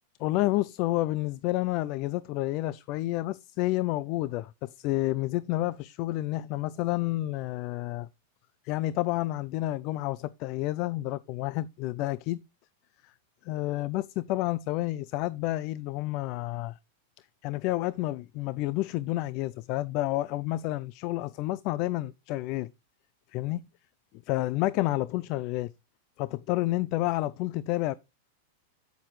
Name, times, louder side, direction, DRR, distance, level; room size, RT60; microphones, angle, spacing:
voice 1, 0.2-8.1 8.7-12.4 13.4-16.8 17.4-22.7 23.3-23.6 24.3-25.7 26.2-27.9, left 17 dB, 50° left, 0.4 m, -30 dB
9.4 x 8.6 x 3.2 m
hypercardioid pair, 125°, 0 cm